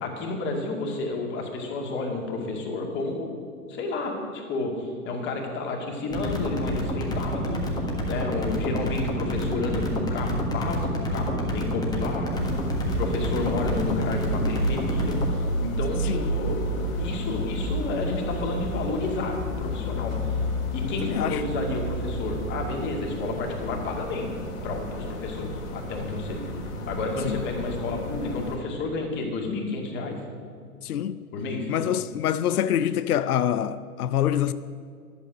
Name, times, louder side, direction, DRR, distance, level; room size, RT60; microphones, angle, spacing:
voice 1, 0.0-3.3 3.7-12.3 12.9-15.2 15.6-16.7 17.0-20.4 20.7-24.3 24.6-26.4 26.9-30.2 31.3-31.7, left 3 dB, 25° left, 2.3 m, -31 dB
sound 1, 6.1-15.3, equal, 10° left, 1.4 m, -28 dB
sound 2, 12.3-28.6, equal, 55° left, 2.7 m, -31 dB
voice 2, 21.0-21.4 27.2-27.4 30.8-31.2 31.7-34.5, left 10 dB, 70° left, 0.6 m, -25 dB
11.0 x 7.0 x 9.2 m
hypercardioid pair, 125°, 46 cm